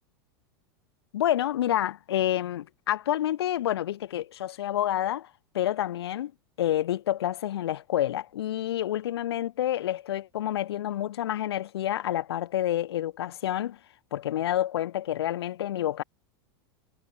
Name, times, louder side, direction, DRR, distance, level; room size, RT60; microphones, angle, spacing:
voice 1, 1.1-5.3 5.5-6.3 6.6-13.8 14.1-16.0, left 12 dB, 80° left, 4.5 m, -28 dB
hypercardioid pair, 115°, 13 cm